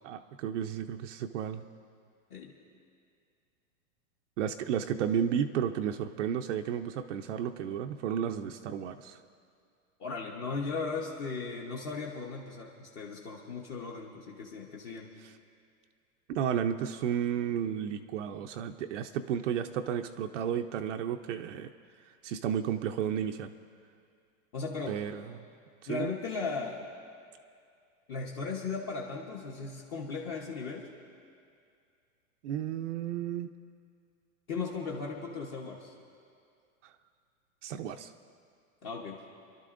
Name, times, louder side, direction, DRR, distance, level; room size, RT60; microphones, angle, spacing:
voice 1, 0.0-1.6 4.4-9.2 16.3-21.7 22.2-23.5 24.9-25.4 25.8-26.1 32.4-33.5 36.8-36.9 37.6-38.1, right 8 dB, 60° right, 6 dB, 0.6 m, -32 dB
voice 2, 10.0-15.1 24.5-25.0 25.9-26.9 28.1-30.9 34.5-35.9 38.8-39.2, left 4 dB, 30° left, -2 dB, 0.9 m, -37 dB
29.5 x 12.0 x 2.5 m, 2.3 s
supercardioid pair, 165°, 41 cm